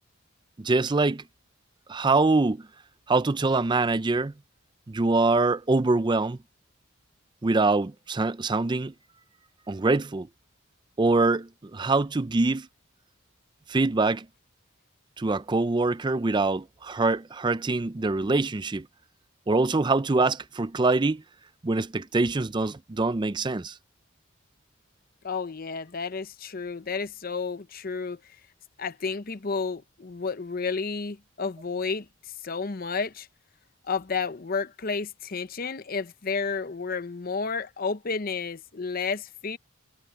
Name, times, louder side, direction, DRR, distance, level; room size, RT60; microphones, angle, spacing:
voice 1, 0.6-1.2 1.9-2.7 3.1-4.3 4.9-6.4 7.4-8.9 9.7-10.3 11.0-12.7 13.7-14.3 15.2-18.9 19.5-21.2 21.6-23.8, right 3 dB, 20° right, 0.4 m, -24 dB
voice 2, 25.2-28.2 28.8-32.1 32.4-33.3 33.9-39.6, left 5 dB, 45° left, 0.7 m, -31 dB
head